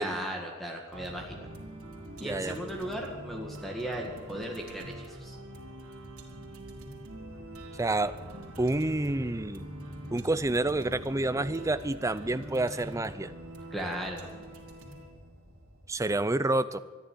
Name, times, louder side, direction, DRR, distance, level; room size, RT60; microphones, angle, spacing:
voice 1, 0.0-1.4 2.2-5.4 13.7-14.3, right 1 dB, ahead, 0 dB, 1.8 m, -36 dB
sound 1, 0.9-16.2, right 1 dB, 90° right, 3.2 m, -44 dB
voice 2, 2.2-2.6 7.8-8.1 8.6-9.6 10.1-13.3 15.9-16.8, right 2 dB, 15° right, 13 dB, 0.5 m, -28 dB
14.0 x 11.0 x 9.6 m, 1.5 s
head